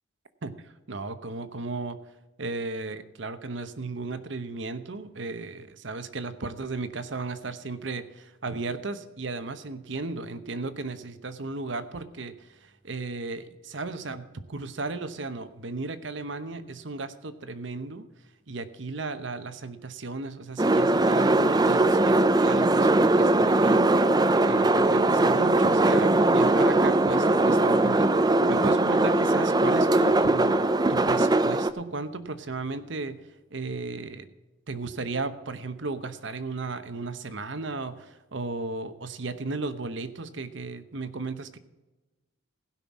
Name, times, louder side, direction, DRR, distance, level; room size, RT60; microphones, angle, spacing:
voice 1, 0.4-2.0 2.4-18.1 18.5-24.0 24.5-30.6 30.9-33.2 33.5-34.3 34.7-41.6, right 3 dB, 65° right, 11 dB, 0.9 m, -35 dB
sound 1, 20.6-31.7, right 2 dB, 20° right, 0.5 m, -21 dB
16.0 x 5.9 x 7.1 m, 1.1 s
head